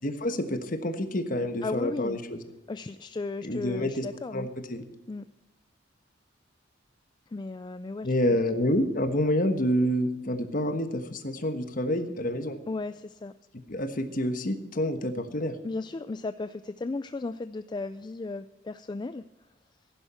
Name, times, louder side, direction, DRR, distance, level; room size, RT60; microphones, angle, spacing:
voice 1, 0.0-2.4 3.4-4.0 4.3-4.8 8.0-12.6 13.7-15.5, left 1 dB, 45° left, 8 dB, 1.3 m, -28 dB
voice 2, 1.6-2.2 2.7-4.5 5.1-5.3 7.3-8.1 12.7-13.3 15.6-19.2, left 3 dB, 25° left, 11 dB, 0.3 m, -35 dB
15.5 x 11.0 x 4.4 m, 0.97 s
head